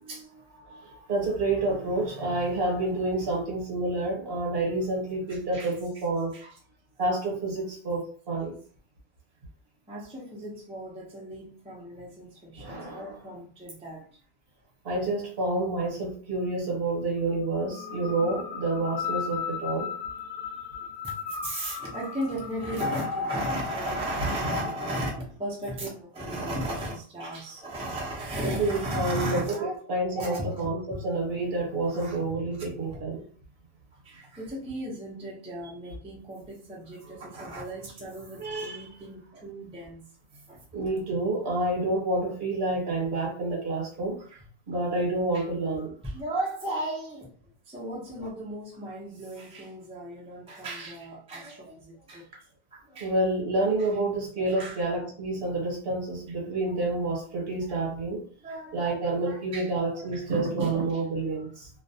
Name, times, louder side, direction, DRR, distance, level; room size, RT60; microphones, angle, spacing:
voice 1, 0.6-6.4 7.0-8.6 12.6-13.2 14.8-19.9 28.4-33.2 37.1-37.2 38.4-38.9 40.7-44.2 44.7-45.9 53.0-58.2 58.7-61.7, right 2 dB, 55° right, 1.1 m, -29 dB
voice 2, 5.3-6.0 6.3-6.6 9.9-14.1 21.0-31.0 31.9-32.2 32.9-33.0 33.9-40.1 40.5-40.6 44.2-44.4 45.3-45.4 46.0-47.3 47.7-52.3 52.7-53.1 53.8-53.9 54.5-55.0 56.7-56.8 57.7-57.9 58.4-60.3 60.6-60.7, right 1 dB, 10° right, 0.4 m, -36 dB
sound 1, 17.6-25.2, left 5 dB, 80° left, 0.9 m, -35 dB
2.4 x 2.1 x 2.7 m
omnidirectional pair, 1.2 m